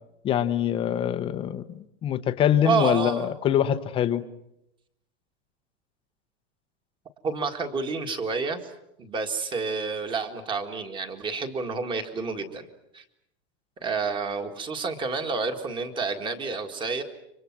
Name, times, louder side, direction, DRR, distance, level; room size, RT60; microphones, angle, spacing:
voice 1, 0.2-4.2, left 10 dB, 15° left, 10 dB, 0.9 m, -24 dB
voice 2, 2.6-3.3 7.2-8.7 9.0-12.7 12.9-13.0 13.8-17.0, right 4 dB, 15° right, 7 dB, 1.9 m, -29 dB
29.0 x 25.0 x 6.1 m, 0.82 s
supercardioid pair, 175°, 33 cm